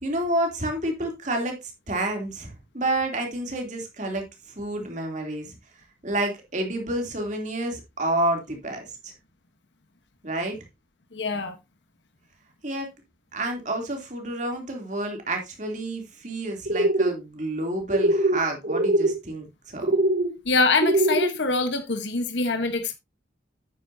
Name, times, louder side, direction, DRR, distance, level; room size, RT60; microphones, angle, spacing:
voice 1, 0.0-4.2 4.6-5.6 6.0-9.1 10.2-10.6 12.6-12.9 13.3-19.9, right 1 dB, 45° right, 3.0 m, -29 dB
voice 2, 11.1-11.6 20.4-23.0, left 3 dB, 90° left, 1.2 m, -24 dB
sound 1, 16.6-17.1 17.9-18.4 18.6-19.1 19.8-20.3 20.8-21.3, right 1 dB, 60° right, 2.5 m, -22 dB
9.4 x 9.3 x 2.7 m
head